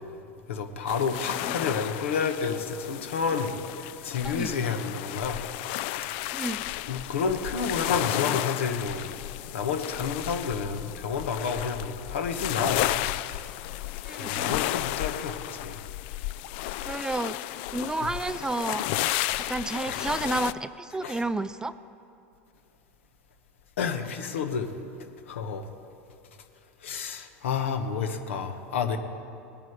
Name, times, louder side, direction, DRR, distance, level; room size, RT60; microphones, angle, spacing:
voice 1, 0.5-3.5 4.0-5.4 6.2-6.3 6.9-9.0 9.5-13.0 14.2-15.4 15.6-15.8 18.0-18.1 19.9-20.0 21.0-21.2 23.8-24.7 25.3-25.6 26.8-29.0, left 6 dB, 80° left, 7 dB, 1.2 m, -30 dB
sound 1, 0.9-20.5, left 15 dB, 60° left, 0.4 m, -33 dB
voice 2, 6.3-6.6 14.1-14.7 16.9-17.4 17.7-18.8 19.5-21.7, right 2 dB, 10° right, 14 dB, 0.4 m, -31 dB
20.0 x 9.0 x 5.1 m, 2.6 s
hypercardioid pair, 95°, 7 cm